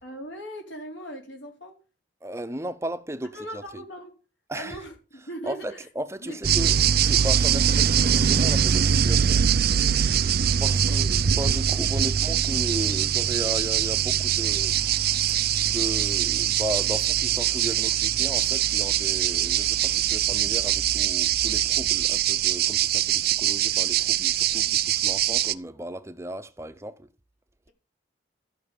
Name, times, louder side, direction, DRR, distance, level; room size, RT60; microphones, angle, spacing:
voice 1, 0.0-1.7 3.3-4.1 4.5-5.8 6.2-6.6 10.7-11.0 24.5-24.7, right 1 dB, 75° left, 4.3 m, -39 dB
voice 2, 2.2-3.8 4.5-4.8 5.4-6.8 7.0-10.0 10.6-14.8 15.1-27.1, right 1 dB, 15° right, 0.7 m, -35 dB
sound 1, 6.4-25.5, right 9 dB, 50° right, 0.5 m, -23 dB
13.5 x 6.2 x 6.8 m
head